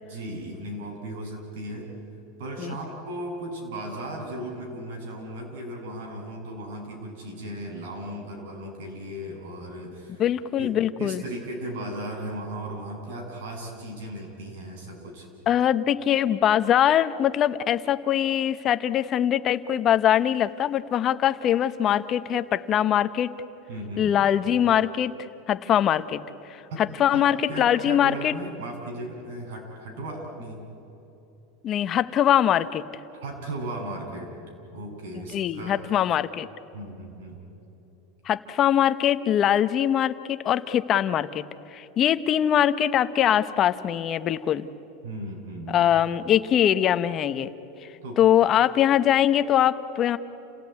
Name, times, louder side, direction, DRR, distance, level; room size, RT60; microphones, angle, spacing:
voice 1, 0.0-1.9 2.4-10.2 10.6-15.3 23.7-24.1 26.7-27.2 27.5-30.6 33.2-34.3 34.7-35.7 36.7-37.4 45.0-45.9 48.0-48.2, right 1 dB, 75° right, 0 dB, 7.6 m, -36 dB
voice 2, 10.2-11.2 15.5-23.3 24.0-25.1 25.5-26.2 26.5-28.3 31.6-32.8 35.3-36.5 38.3-41.4 41.7-44.7 45.7-47.5 48.2-50.2, left 10 dB, 30° left, 12 dB, 0.9 m, -22 dB
29.0 x 17.0 x 9.5 m, 3.0 s
supercardioid pair, 150°, 0 cm